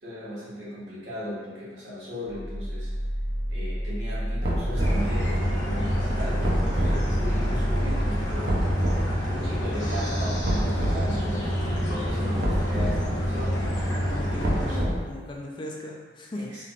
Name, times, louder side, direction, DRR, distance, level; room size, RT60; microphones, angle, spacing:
voice 1, 0.0-2.9 3.5-8.6 9.3-13.7 14.3-14.9 16.3-16.6, equal, 80° right, -10 dB, 1.4 m, -37 dB
sound 1, 2.3-8.2, equal, 5° right, 0.9 m, -29 dB
sound 2, 4.4-5.1 6.4-7.0 8.4-9.0 10.4-11.0 12.4-13.0 14.4-15.1, equal, 55° right, 0.6 m, -27 dB
sound 3, 4.8-14.8, equal, 80° left, 0.9 m, -27 dB
voice 2, 13.9-16.5, left 1 dB, 25° left, -1 dB, 0.3 m, -38 dB
3.3 x 3.0 x 2.4 m, 1.3 s
head